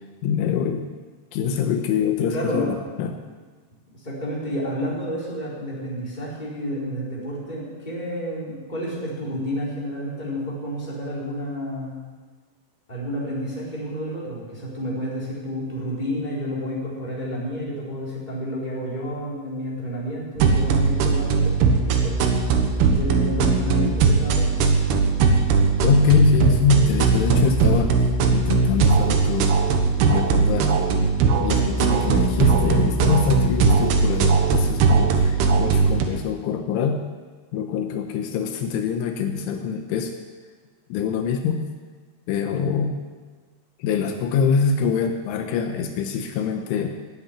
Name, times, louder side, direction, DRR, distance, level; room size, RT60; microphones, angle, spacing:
voice 1, 0.2-0.9 1.3-3.2 25.8-28.0 28.3-29.5 30.1-30.7 31.4-37.0 37.5-40.1 40.9-41.7 42.3-42.9 43.8-46.9, left 6 dB, 80° left, 5 dB, 3.4 m, -24 dB
voice 2, 2.3-2.7 3.9-12.0 12.9-22.2 22.9-24.6, equal, 10° left, -6 dB, 4.2 m, -30 dB
sound 1, 20.4-36.0, right 4 dB, 70° right, 2.8 m, -19 dB
16.0 x 8.8 x 9.9 m, 1.4 s
omnidirectional pair, 5.6 m